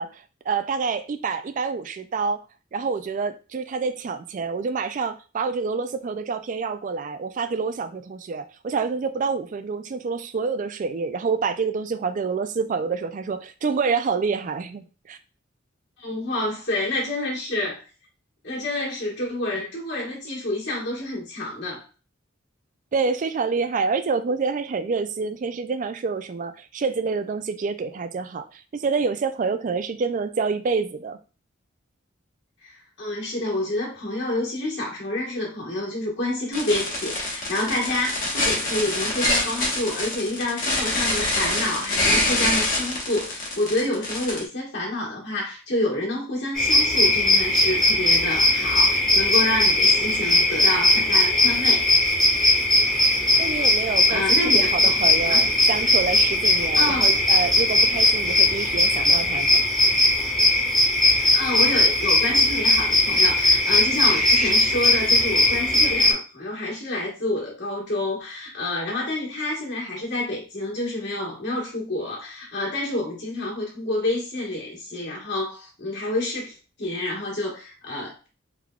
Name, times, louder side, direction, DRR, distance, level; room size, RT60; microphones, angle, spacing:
voice 1, 0.0-2.4 2.7-15.2 22.9-31.2 53.4-54.2 54.5-59.6, right 5 dB, 40° right, 0.3 m, -27 dB
voice 2, 16.0-17.8 18.4-21.8 32.6-51.9 54.1-55.0 55.3-55.5 56.7-57.2 61.1-78.3, left 1 dB, 60° left, 1.5 m, -28 dB
sound 1, 36.5-44.4, left 1 dB, 40° left, 1.2 m, -25 dB
sound 2, 46.5-66.1, left 1 dB, ahead, 1.1 m, -19 dB
3.5 x 3.4 x 2.3 m
head